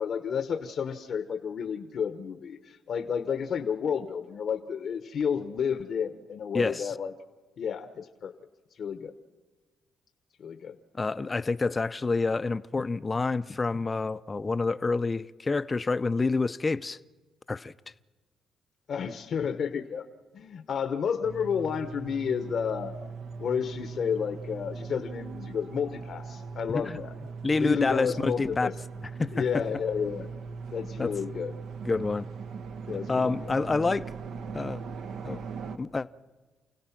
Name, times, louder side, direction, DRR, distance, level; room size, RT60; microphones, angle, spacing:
voice 1, 0.0-7.1 7.6-8.3 8.7-9.1 10.4-10.8 18.9-20.1 20.3-22.9 23.4-27.1 27.5-28.7 29.3-30.3 30.7-31.5 32.9-33.5, left 7 dB, 60° left, 1.0 m, -31 dB
voice 2, 6.5-6.9 11.0-17.0 17.5-17.7 26.7-27.0 27.4-28.7 29.2-29.6 31.0-31.1 31.8-32.3 33.1-34.1 34.5-34.8 35.2-35.4 35.8-36.1, left 3 dB, 25° left, 0.6 m, -28 dB
sound 1, 21.2-35.8, right 5 dB, 75° right, 1.0 m, -40 dB
29.0 x 16.5 x 5.9 m
cardioid pair, 90°, 0 cm